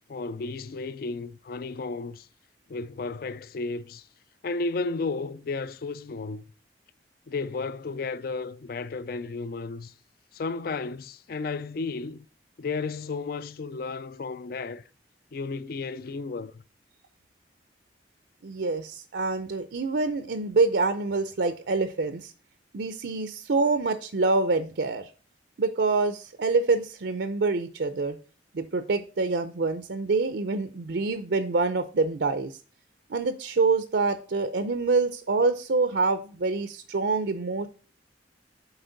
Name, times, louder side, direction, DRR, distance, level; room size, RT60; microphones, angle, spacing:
voice 1, 0.1-2.3 2.7-4.1 4.4-6.4 7.3-9.9 10.3-12.3 12.6-14.9 15.3-16.6, left 3 dB, 55° left, 0.4 m, -33 dB
voice 2, 18.4-22.3 22.7-25.1 25.6-28.2 28.5-32.5 33.1-37.7, right 3 dB, 75° right, 0.5 m, -26 dB
7.9 x 4.4 x 3.9 m
head